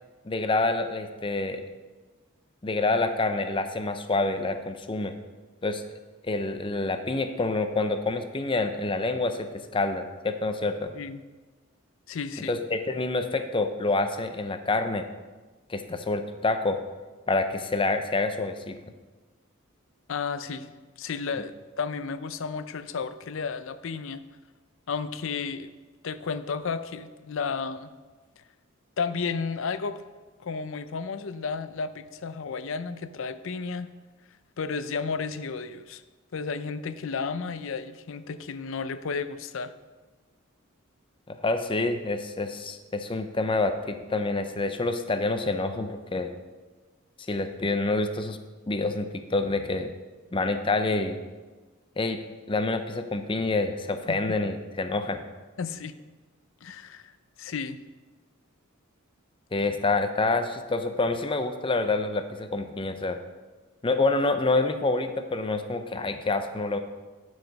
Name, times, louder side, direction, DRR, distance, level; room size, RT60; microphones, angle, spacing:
voice 1, 0.2-1.6 2.6-5.1 5.6-5.8 6.2-10.9 12.5-15.1 15.7-16.8 17.3-18.8 41.3-46.3 47.3-48.4 48.7-49.9 50.3-51.2 52.0-55.2 59.5-63.2 63.8-66.8, left 3 dB, 25° left, 8 dB, 0.6 m, -27 dB
voice 2, 12.1-12.6 20.1-20.7 21.0-24.2 24.9-25.7 26.0-27.9 29.0-30.0 30.4-33.9 34.6-36.0 36.3-39.7 54.1-54.4 55.6-55.9 56.6-57.1 57.4-57.8, left 5 dB, 65° left, 12 dB, 0.5 m, -32 dB
11.5 x 4.8 x 5.3 m, 1.3 s
head